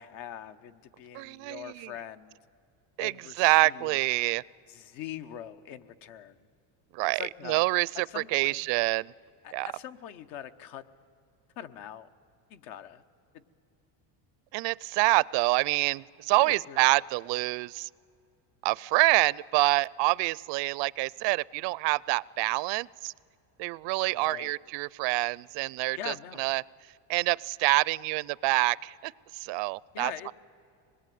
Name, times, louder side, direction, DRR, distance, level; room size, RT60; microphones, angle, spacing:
voice 1, 0.0-2.4 3.0-4.0 4.7-6.4 7.1-7.7 7.9-8.7 9.4-10.8 11.6-12.1 12.5-13.0 13.3-13.4 16.4-16.9 24.0-24.6 26.0-26.5 29.9-30.3, left 10 dB, 70° left, 10 dB, 1.2 m, -43 dB
voice 2, 1.1-1.9 3.0-4.4 6.9-9.1 9.5-9.7 14.5-17.9 18.6-23.1 23.6-26.6 27.1-29.1 29.4-30.3, right 23 dB, 65° right, 23 dB, 0.5 m, -27 dB
25.5 x 20.5 x 9.3 m, 2.5 s
cardioid pair, 130°, 48 cm